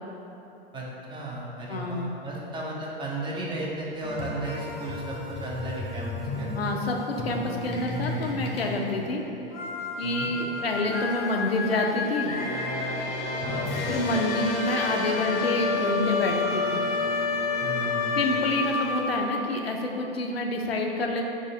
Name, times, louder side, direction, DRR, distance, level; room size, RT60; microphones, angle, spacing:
voice 1, 0.7-6.7 10.0-10.3 13.4-13.9 17.6-18.2, right 2 dB, 15° right, -3 dB, 0.6 m, -35 dB
voice 2, 1.7-2.1 6.6-9.2 10.0-12.3 13.9-16.8 18.2-21.2, left 2 dB, 85° left, 1 dB, 0.5 m, -28 dB
sound 1, 4.0-19.5, left 3 dB, 35° left, 0.7 m, -30 dB
4.9 x 3.2 x 2.7 m, 3.0 s
figure-of-eight pair, 85°, 29 cm